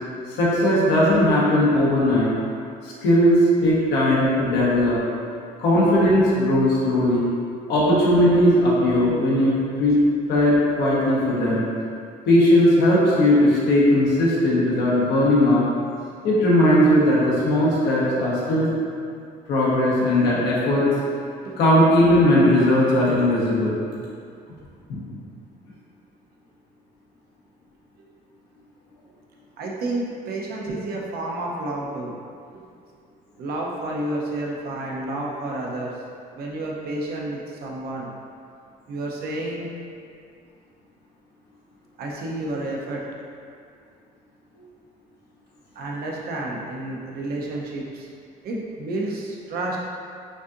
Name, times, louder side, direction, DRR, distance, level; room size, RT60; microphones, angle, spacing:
voice 1, 0.4-2.3 2.8-5.0 5.6-7.3 7.7-10.0 10.3-11.6 12.3-15.6 16.2-18.7 19.5-20.9 21.6-23.8 24.9-25.1, left 1 dB, 85° left, -6 dB, 1.2 m, -18 dB
voice 2, 29.6-32.1 32.5-32.6 33.4-35.9 36.4-38.1 38.9-39.7 42.0-43.0 45.7-48.1 48.4-49.8, right 2 dB, 65° right, -2 dB, 0.8 m, -30 dB
6.2 x 2.7 x 2.5 m, 2.4 s
cardioid pair, 110°, 17 cm